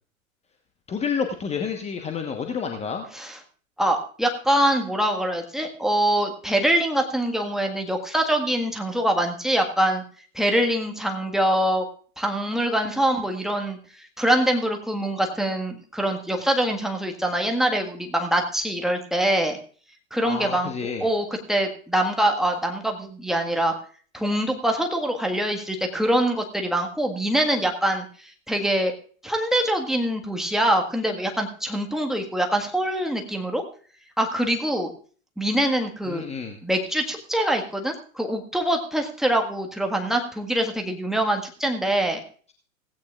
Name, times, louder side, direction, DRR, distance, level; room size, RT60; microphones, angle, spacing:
voice 1, 0.9-3.0 20.2-21.1 36.1-36.6, left 6 dB, 15° left, 4 dB, 1.2 m, -29 dB
voice 2, 3.8-10.0 10.3-11.8 12.2-19.6 20.1-23.7 24.1-28.9 29.2-33.6 34.2-34.9 35.4-36.2 36.6-42.2, right 1 dB, ahead, 2 dB, 1.6 m, -24 dB
17.0 x 16.0 x 2.5 m, 0.43 s
figure-of-eight pair, 100°, 42 cm